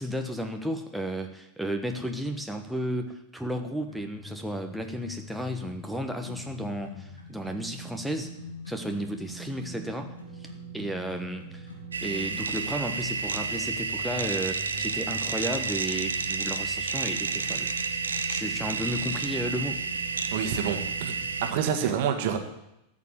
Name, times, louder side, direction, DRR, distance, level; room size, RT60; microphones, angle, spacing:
voice 1, 0.0-8.3 8.7-11.7 12.0-17.7 18.3-19.8 21.8-21.9, equal, ahead, 3 dB, 1.3 m, -33 dB
sound 1, 3.9-21.6, right 1 dB, 80° left, 2.5 m, -43 dB
sound 2, 11.9-21.5, right 5 dB, 70° right, 1.0 m, -31 dB
voice 2, 20.3-21.1 21.4-22.4, right 8 dB, 50° right, 6 dB, 1.8 m, -27 dB
13.5 x 7.3 x 9.5 m, 0.85 s
figure-of-eight pair, 90°, 0 cm